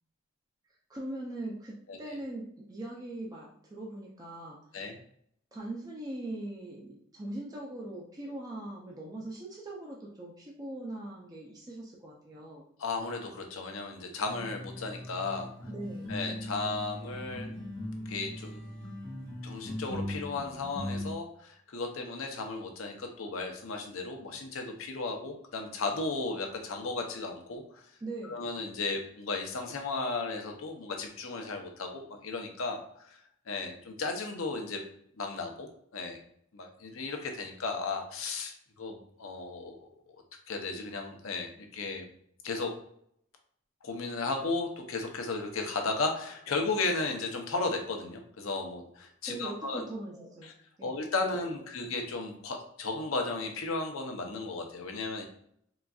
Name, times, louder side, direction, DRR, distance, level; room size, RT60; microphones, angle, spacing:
voice 1, 0.9-4.9 5.5-12.6 15.7-16.1 28.0-28.5 49.3-50.5 50.8-51.0, right 1 dB, 20° right, -3 dB, 0.4 m, -41 dB
voice 2, 12.8-15.5 16.1-17.7 18.1-18.6 19.4-27.8 28.3-33.2 33.5-34.8 35.2-36.2 36.5-39.9 40.5-42.1 42.4-42.7 43.8-49.8 50.4-50.5 50.8-55.3, left 3 dB, 85° left, 3 dB, 0.6 m, -35 dB
sound 1, 14.2-21.1, left 1 dB, 55° right, 1.5 m, -39 dB
3.9 x 2.4 x 2.3 m, 0.68 s
head